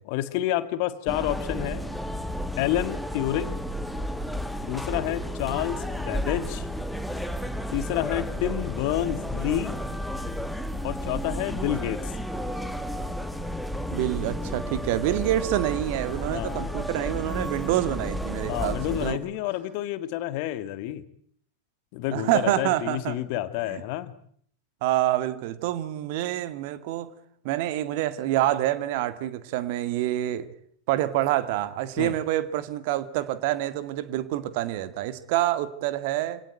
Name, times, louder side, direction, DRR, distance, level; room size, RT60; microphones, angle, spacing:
voice 1, 0.0-1.8 2.6-3.6 4.6-6.7 7.7-9.7 10.8-12.1 16.3-16.7 18.5-21.0 21.9-24.1 32.0-32.1, left 13 dB, 45° left, 14 dB, 1.6 m, -29 dB
sound 1, 1.1-19.1, equal, ahead, 1.9 m, -32 dB
voice 2, 13.9-19.2 22.1-23.2 23.7-23.8 24.8-27.1 27.4-30.5 30.9-36.4, right 14 dB, 50° right, 12 dB, 1.9 m, -27 dB
26.5 x 18.0 x 9.0 m, 0.63 s
figure-of-eight pair, 90°, 0 cm